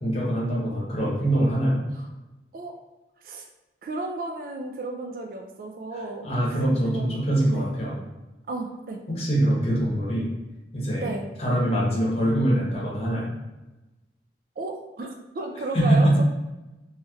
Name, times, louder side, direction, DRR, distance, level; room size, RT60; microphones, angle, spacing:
voice 1, 0.0-1.8 6.2-7.9 9.1-10.3 10.7-11.1 11.4-13.3 15.7-16.1, right 1 dB, 35° left, -5 dB, 0.9 m, -23 dB
voice 2, 3.8-6.3 6.8-7.1 7.5-7.7 8.5-9.0 11.0-11.3 14.6-16.2, right 2 dB, 50° right, 3 dB, 0.3 m, -33 dB
3.1 x 3.0 x 2.3 m, 1.0 s
head